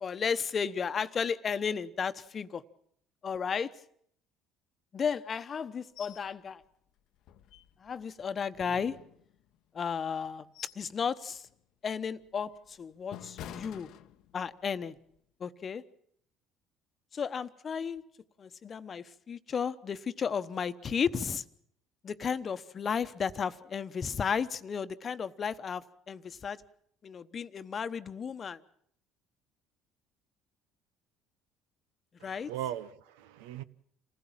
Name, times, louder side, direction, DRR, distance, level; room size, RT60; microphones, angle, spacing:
voice 1, 0.0-2.6 3.2-3.7 4.9-6.6 7.8-8.9 9.7-10.5 10.8-11.4 11.8-13.9 14.3-14.9 15.4-15.8 17.1-18.0 18.4-21.4 22.0-26.6 27.0-28.6 32.2-32.5, left 6 dB, 40° left, 1.0 m, -33 dB
sound 1, 6.0-6.3 6.6-6.7 7.2-8.0 8.5-9.6 10.1-10.9 11.3-11.6 12.1-14.6 15.0-15.2, left 11 dB, 65° left, 0.8 m, -49 dB
voice 2, 32.2-33.6, right 12 dB, 85° right, 0.8 m, -39 dB
27.0 x 15.5 x 7.4 m
supercardioid pair, 75°, 0 cm